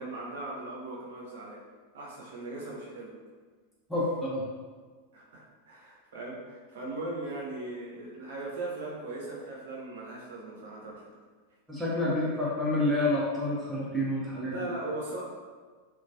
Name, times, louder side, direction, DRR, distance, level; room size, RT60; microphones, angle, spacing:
voice 1, 0.0-1.6 1.9-3.1 5.1-11.1 12.1-12.5 14.5-15.2, right 2 dB, 55° right, -3 dB, 0.7 m, -39 dB
voice 2, 3.9-4.4 11.7-14.7, left 1 dB, ahead, -8 dB, 0.7 m, -28 dB
3.0 x 2.3 x 2.6 m, 1.5 s
figure-of-eight pair, 90°, 0 cm